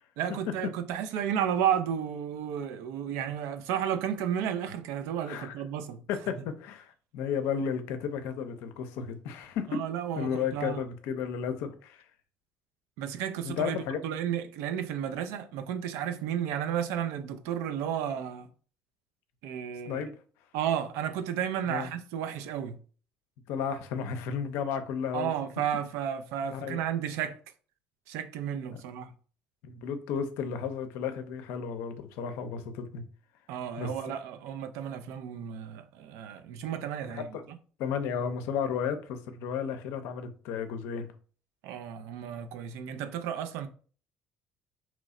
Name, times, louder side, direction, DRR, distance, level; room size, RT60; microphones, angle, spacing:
voice 1, 0.2-6.0 9.7-10.8 13.0-13.8 14.0-18.5 19.4-20.1 20.5-22.8 25.1-27.4 28.1-29.1 33.5-37.6 41.6-43.7, right 9 dB, 80° right, 0.4 m, -32 dB
voice 2, 6.1-9.8 10.2-12.0 13.4-14.0 19.9-20.1 21.7-21.9 23.5-25.3 26.5-26.8 28.7-28.8 29.6-33.0 33.8-33.9 37.1-37.4 37.8-41.1, left 7 dB, 80° left, 0.5 m, -33 dB
3.0 x 2.0 x 3.6 m
supercardioid pair, 75°, 4 cm